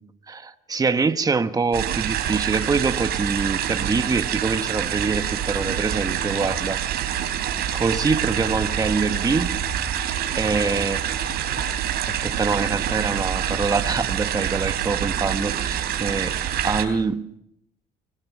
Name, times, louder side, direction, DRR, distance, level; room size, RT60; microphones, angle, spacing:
voice 1, 0.3-6.8 7.7-9.6 10.3-11.1 12.2-16.4 16.6-17.3, right 4 dB, 20° right, 1.2 m, -25 dB
sound 1, 1.7-16.8, right 10 dB, 70° right, 3.7 m, -26 dB
sound 2, 5.1-15.0, left 4 dB, 75° left, 6.6 m, -42 dB
25.5 x 21.5 x 6.1 m
cardioid pair, 110°, 17 cm